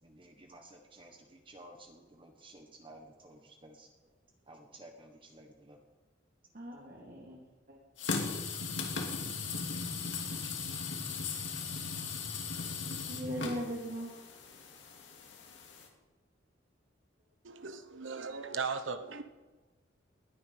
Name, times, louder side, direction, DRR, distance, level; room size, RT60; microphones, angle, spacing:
voice 1, 0.0-3.9 4.5-5.8, right 1 dB, 30° right, 1.4 m, -54 dB
voice 2, 6.5-7.4 7.7-7.8 13.0-14.1, equal, 55° right, 3.0 m, -39 dB
sound 1, 8.0-15.9, left 4 dB, 75° left, 2.5 m, -38 dB
voice 3, 17.4-19.2, right 5 dB, 90° right, 1.0 m, -37 dB
19.5 x 10.0 x 5.7 m
head